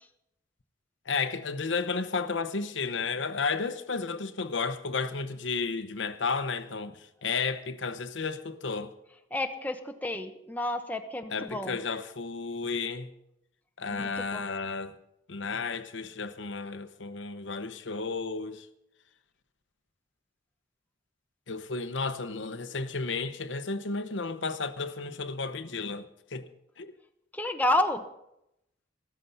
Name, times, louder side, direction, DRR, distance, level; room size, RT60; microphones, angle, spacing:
voice 1, 1.1-8.9 11.3-13.1 13.8-15.0 15.3-18.7 21.5-26.5 26.8-26.9, left 4 dB, 85° left, 1.0 m, -33 dB
voice 2, 9.3-11.8 13.9-14.5 27.3-28.0, left 1 dB, 10° left, 1.0 m, -30 dB
14.5 x 13.5 x 5.6 m
head